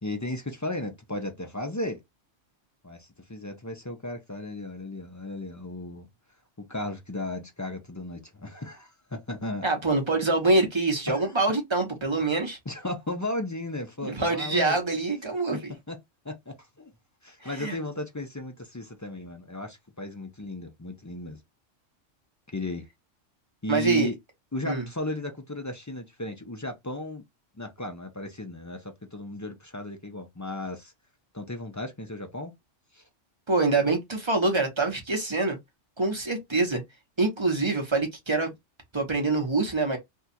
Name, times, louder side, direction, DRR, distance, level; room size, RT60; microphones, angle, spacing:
voice 1, 0.0-2.0 2.8-6.1 6.6-9.6 11.1-11.3 12.7-14.8 15.9-16.0 16.2-16.9 17.2-21.4 22.5-22.8 23.6-24.2 24.5-27.2 27.6-30.9 31.3-32.5 32.9-33.0, left 1 dB, 25° left, 0.4 m, -35 dB
voice 2, 9.6-12.6 14.0-15.7 17.4-17.8 23.7-24.1 24.6-24.8 33.5-35.6 36.0-36.8 37.2-38.5 38.9-40.0, right 3 dB, 25° right, 0.9 m, -25 dB
2.7 x 2.4 x 4.1 m
omnidirectional pair, 1.3 m